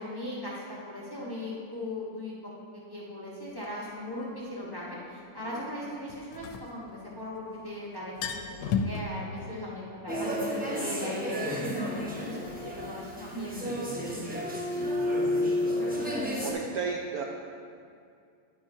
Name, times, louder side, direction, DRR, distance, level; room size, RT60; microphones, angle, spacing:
voice 1, 0.0-11.6 12.2-13.8, left 1 dB, 15° left, -6 dB, 1.0 m, -39 dB
sound 1, 3.6-3.7 6.1-7.4 7.7-7.8 8.0-9.0, left 6 dB, 75° left, 1.2 m, -32 dB
sound 2, 10.1-16.5, left 1 dB, 10° right, 0.4 m, -31 dB
voice 2, 16.4-17.2, right 5 dB, 70° right, 1 dB, 0.9 m, -34 dB
9.7 x 9.3 x 2.7 m, 2.4 s
omnidirectional pair, 2.0 m